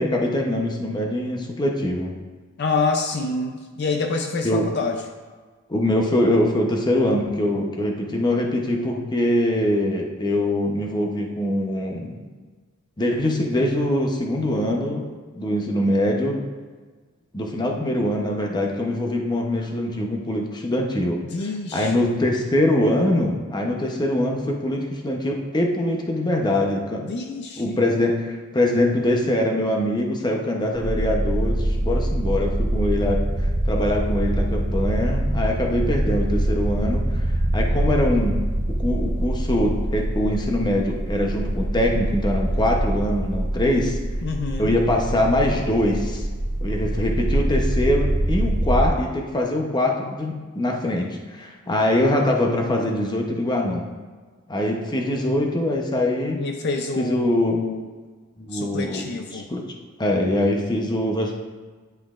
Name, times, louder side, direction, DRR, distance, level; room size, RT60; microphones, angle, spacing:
voice 1, 0.0-2.1 4.4-4.7 5.7-12.2 13.0-15.1 15.3-16.4 17.3-21.2 21.7-27.1 27.6-33.2 33.6-37.2 37.5-38.4 38.8-44.0 44.6-46.3 46.6-53.9 54.5-56.4 57.0-57.6 58.4-59.0 59.3-59.6 60.0-61.3, left 1 dB, 20° left, 1 dB, 0.8 m, -23 dB
voice 2, 2.6-5.0 21.3-22.2 27.0-27.8 44.2-44.8 56.4-57.8 58.5-59.5, left 3 dB, 55° left, 4 dB, 0.5 m, -27 dB
sound 1, 30.7-48.9, right 1 dB, 60° right, 0.9 m, -24 dB
10.0 x 5.7 x 2.5 m, 1.4 s
head